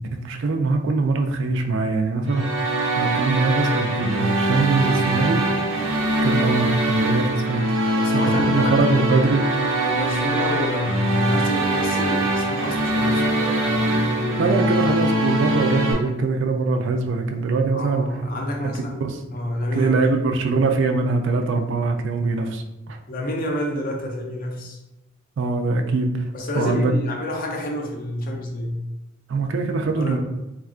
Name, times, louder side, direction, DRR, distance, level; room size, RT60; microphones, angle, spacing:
voice 1, 0.1-2.5 3.0-5.4 6.2-7.7 8.1-9.4 14.4-18.1 19.0-19.2 19.7-23.0 25.4-26.2 26.6-26.9 29.3-30.2, right 3 dB, 60° right, 4 dB, 0.3 m, -22 dB
sound 1, 2.3-15.9, right 1 dB, 80° right, 0.7 m, -23 dB
voice 2, 7.9-9.1 9.7-15.0 17.7-20.1 23.1-24.8 26.3-28.8 30.0-30.2, left 1 dB, 45° left, 1 dB, 0.5 m, -28 dB
3.5 x 2.3 x 2.4 m, 0.97 s
head